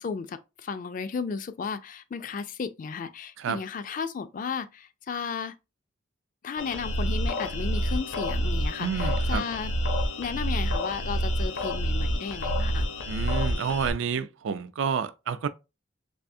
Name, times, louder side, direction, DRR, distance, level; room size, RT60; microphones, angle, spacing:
voice 1, 0.0-5.5 6.4-9.7 10.2-12.9, left 5 dB, 40° left, 0.3 m, -34 dB
sound 1, 6.6-13.9, equal, 75° left, 0.7 m, -28 dB
voice 2, 8.8-9.4 13.1-15.5, right 6 dB, 80° right, 0.4 m, -29 dB
3.4 x 3.3 x 2.6 m
head